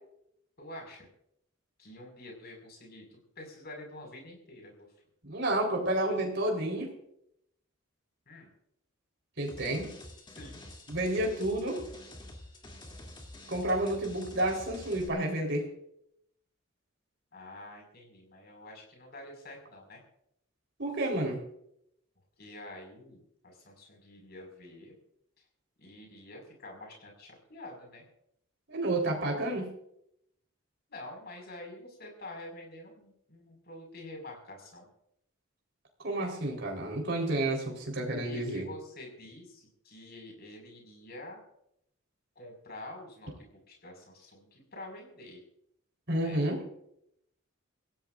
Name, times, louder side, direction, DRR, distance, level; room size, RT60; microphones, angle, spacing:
voice 1, 0.6-1.1 1.8-4.7 8.3-8.5 10.3-10.6 17.3-20.0 22.4-25.0 25.8-28.0 30.9-34.9 38.2-41.4 42.4-45.4 46.2-46.5, left 1 dB, 50° left, 1 dB, 5.5 m, -47 dB
voice 2, 5.2-6.9 9.4-9.9 10.9-11.8 13.5-15.6 20.8-21.4 28.7-29.7 36.0-38.6 46.1-46.6, right 1 dB, 55° right, 0 dB, 4.0 m, -30 dB
sound 1, 9.5-15.1, left 1 dB, 25° left, 2.7 m, -48 dB
25.0 x 16.0 x 2.5 m, 0.74 s
head